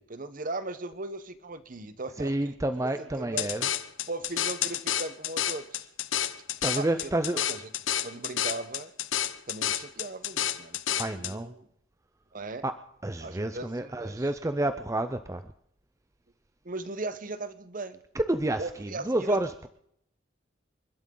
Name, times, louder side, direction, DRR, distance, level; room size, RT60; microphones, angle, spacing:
voice 1, 0.0-2.5 2.8-3.5 4.1-5.9 6.7-7.6 8.0-8.9 9.5-11.7 12.3-12.6 13.2-14.3 16.6-18.0 18.6-19.4, right 2 dB, 45° right, 13 dB, 1.0 m, -38 dB
voice 2, 2.2-3.7 6.6-7.4 11.0-11.5 12.6-12.7 13.0-15.5 18.1-19.7, right 1 dB, 15° right, 9 dB, 0.5 m, -29 dB
sound 1, 3.4-11.3, left 11 dB, 80° left, 0.8 m, -30 dB
29.0 x 12.0 x 3.9 m, 0.72 s
head